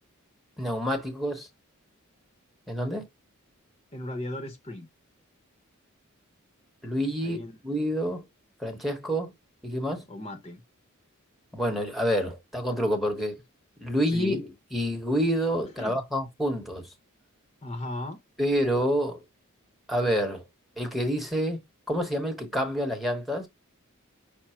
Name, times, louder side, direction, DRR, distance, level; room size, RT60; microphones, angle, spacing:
voice 1, 0.6-1.5 2.7-3.0 6.8-7.4 7.6-8.2 8.6-9.3 9.6-10.0 11.5-13.3 13.8-14.4 14.7-16.9 18.4-19.2 19.9-20.4 20.8-21.6 21.9-23.5, equal, ahead, 1.0 m, -27 dB
voice 2, 3.9-4.9 7.2-7.6 10.1-10.6 14.1-14.5 15.7-16.0 17.6-18.2, left 1 dB, 30° left, 0.8 m, -36 dB
6.0 x 2.0 x 4.3 m
head